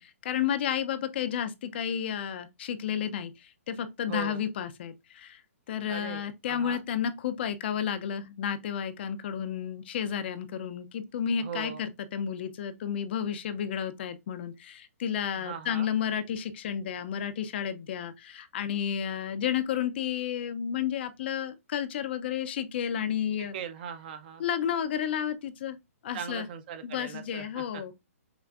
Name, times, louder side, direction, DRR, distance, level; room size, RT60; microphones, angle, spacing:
voice 1, 0.3-3.3 3.7-4.9 5.2-5.3 5.7-23.6 24.4-25.8 26.0-26.5 26.8-27.9, left 8 dB, 45° left, 0.4 m, -31 dB
voice 2, 4.1-4.4 5.9-6.2 6.5-6.8 11.4-11.8 15.4-15.9 23.4-24.4 26.1-27.9, right 8 dB, 35° right, 0.6 m, -39 dB
5.8 x 2.4 x 2.3 m
hypercardioid pair, 155°, 8 cm